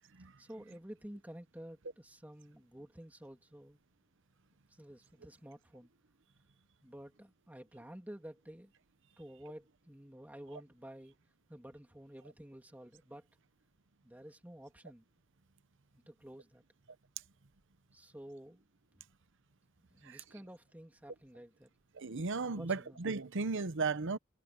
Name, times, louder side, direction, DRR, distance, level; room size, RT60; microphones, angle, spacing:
voice 1, 0.4-3.8 4.8-5.9 6.8-8.7 9.2-11.1 11.5-13.2 14.0-15.0 16.1-16.6 17.9-18.6 19.9-21.7 22.6-23.0, equal, 5° right, 3.0 m, -51 dB
voice 2, 21.9-24.2, right 4 dB, 60° right, 0.9 m, -35 dB
head